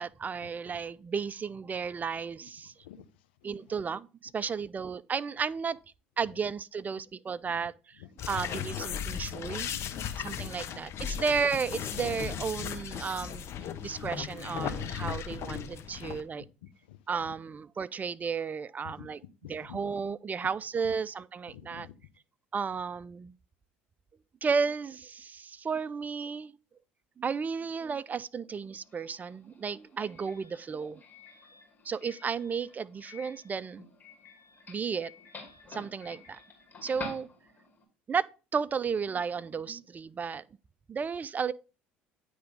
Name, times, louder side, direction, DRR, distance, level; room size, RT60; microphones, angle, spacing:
voice 1, 0.0-2.7 3.4-4.1 4.3-5.8 6.2-7.7 8.3-9.7 10.2-13.4 13.8-16.4 17.1-19.2 19.5-21.9 22.5-23.3 24.4-26.5 27.2-31.0 31.9-33.8 34.7-35.1 35.7-36.4 36.8-37.3 38.1-38.2 38.5-40.4 40.9-41.5, right 5 dB, 30° right, 0.4 m, -33 dB
voice 2, 8.0-8.6 9.0-9.1 9.7-10.6 13.7-14.0 16.6-17.4 18.8-19.1 19.4-19.8 21.5-21.9, left 12 dB, 80° left, 0.6 m, -50 dB
sound 1, 8.2-16.2, left 8 dB, 50° left, 0.9 m, -36 dB
Doorbell, 28.8-37.8, left 4 dB, 30° left, 2.6 m, -49 dB
9.4 x 3.4 x 5.2 m
hypercardioid pair, 70°, 6 cm